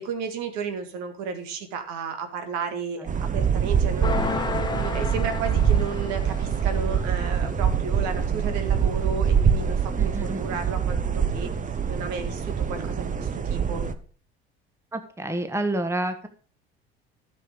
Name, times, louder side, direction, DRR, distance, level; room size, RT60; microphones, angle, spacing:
voice 1, 0.0-4.2 4.7-11.5 11.9-13.9, right 5 dB, 60° right, 7 dB, 1.9 m, -33 dB
sound 1, 3.1-13.9, right 7 dB, 25° right, 1.0 m, -25 dB
sound 2, 4.0-6.8, left 4 dB, 15° left, 1.6 m, -31 dB
voice 2, 10.0-10.4 14.9-16.3, right 1 dB, 10° right, 8 dB, 1.4 m, -29 dB
12.5 x 6.4 x 5.0 m, 0.43 s
hypercardioid pair, 65°, 31 cm